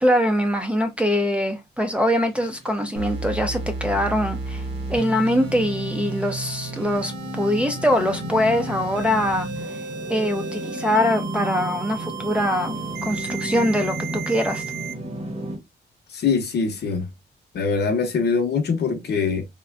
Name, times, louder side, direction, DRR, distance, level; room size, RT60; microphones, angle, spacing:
voice 1, 0.0-4.6 4.9-9.5 10.1-14.6, equal, 5° right, 0.4 m, -23 dB
sound 1, 2.3-15.6, right 1 dB, 30° right, 0.8 m, -34 dB
sound 2, 2.9-14.9, right 4 dB, 75° right, 0.8 m, -34 dB
voice 2, 16.1-17.1 17.5-19.5, left 5 dB, 60° left, 0.8 m, -23 dB
3.6 x 2.2 x 2.4 m
wide cardioid pair, 155°, 19 cm